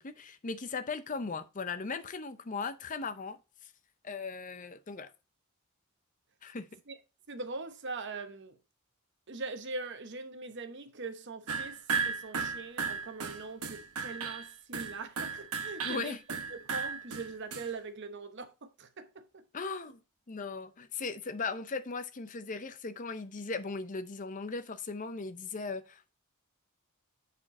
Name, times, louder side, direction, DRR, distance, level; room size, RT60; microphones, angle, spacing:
voice 1, 0.0-3.7 4.0-5.1 6.4-6.7 15.8-16.2 19.5-20.0 20.3-26.1, left 4 dB, 35° left, 0.6 m, -38 dB
voice 2, 7.3-8.6 9.3-16.2 16.5-19.9, right 3 dB, 55° right, 0.9 m, -42 dB
sound 1, 11.5-17.7, right 5 dB, 85° right, 1.0 m, -35 dB
7.4 x 4.4 x 4.2 m
head